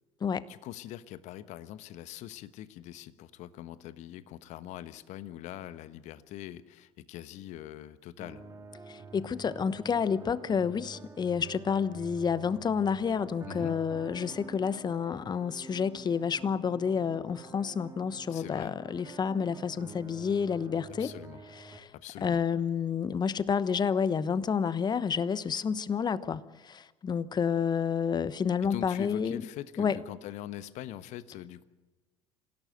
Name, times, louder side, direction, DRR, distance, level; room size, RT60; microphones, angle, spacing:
voice 1, 0.5-8.4 13.5-13.8 18.3-18.8 21.0-21.4 21.9-22.4 28.6-31.6, left 13 dB, 55° left, 13 dB, 1.2 m, -43 dB
sound 1, 8.2-21.8, right 3 dB, 20° right, 3.4 m, -48 dB
voice 2, 8.9-21.1 21.7-21.9 22.2-29.4 29.8-30.0, left 6 dB, 30° left, 16 dB, 1.0 m, -29 dB
27.0 x 17.0 x 7.9 m, 1.2 s
figure-of-eight pair, 65°, 14 cm